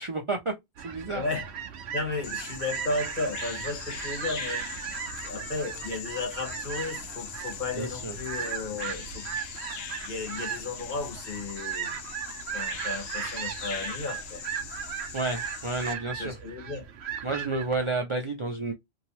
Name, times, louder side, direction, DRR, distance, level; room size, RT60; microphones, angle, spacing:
voice 1, 0.1-0.5 0.8-1.2 7.7-8.2 15.1-16.3 17.2-18.7, right 3 dB, 40° right, 0.5 m, -30 dB
sound 1, 0.8-17.9, right 8 dB, 75° right, 0.9 m, -37 dB
voice 2, 1.1-1.5 1.9-4.7 5.2-9.2 9.7-12.0 12.5-14.4 16.2-16.9, left 3 dB, 45° left, 1.3 m, -34 dB
Bird vocalization bird call bird song, 2.2-15.9, left 7 dB, 70° left, 0.8 m, -41 dB
2.9 x 2.6 x 2.8 m
omnidirectional pair, 1.1 m